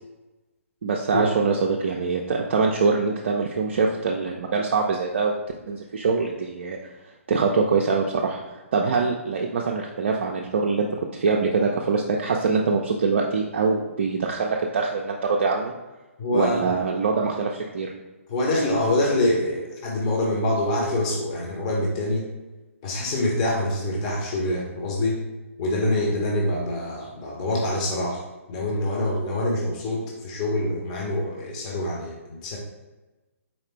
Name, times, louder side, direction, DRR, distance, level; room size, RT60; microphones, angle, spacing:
voice 1, 0.8-5.4 5.7-6.8 7.3-10.9 11.1-15.7 16.3-17.9, right 4 dB, 50° right, 0 dB, 0.4 m, -24 dB
voice 2, 16.2-16.8 18.3-22.3 22.8-25.2 25.6-28.2 28.5-32.6, left 1 dB, 30° left, -2 dB, 0.7 m, -25 dB
4.2 x 3.2 x 3.0 m, 1.1 s
figure-of-eight pair, 130°, 8 cm